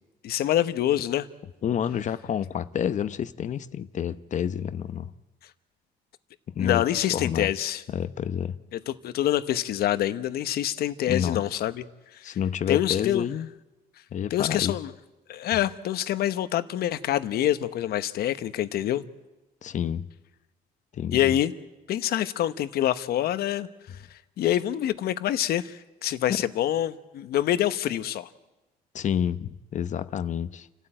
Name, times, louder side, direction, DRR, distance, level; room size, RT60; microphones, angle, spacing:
voice 1, 0.2-1.3 6.6-7.8 8.9-11.8 12.2-12.4 12.7-13.2 14.3-14.9 15.3-19.0 21.1-21.5 21.9-23.7 24.4-28.3, left 12 dB, 65° left, 1.0 m, -26 dB
voice 2, 1.6-5.1 6.5-6.8 7.1-7.7 7.9-8.6 11.1-11.4 12.2-13.5 14.1-14.7 19.6-20.0 21.0-21.3 28.9-30.7, left 9 dB, 45° left, 0.8 m, -29 dB
29.5 x 13.0 x 8.9 m
cardioid pair, 110°, 17 cm